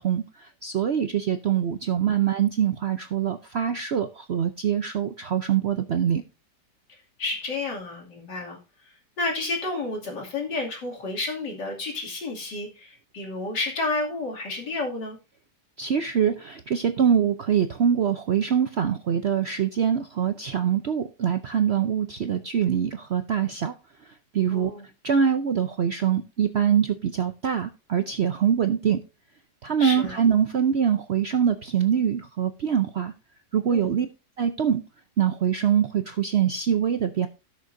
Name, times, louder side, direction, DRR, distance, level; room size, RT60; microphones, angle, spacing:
voice 1, 0.0-6.2 15.8-23.7 24.3-24.7 25.0-29.0 29.6-33.1 33.5-34.1 34.4-34.8 35.2-37.3, right 8 dB, 60° right, 0.6 m, -24 dB
voice 2, 7.2-8.6 9.2-15.2 24.5-24.9 29.8-30.2 33.7-34.0, left 3 dB, 75° left, 3.2 m, -31 dB
17.5 x 6.6 x 2.6 m
omnidirectional pair, 1.9 m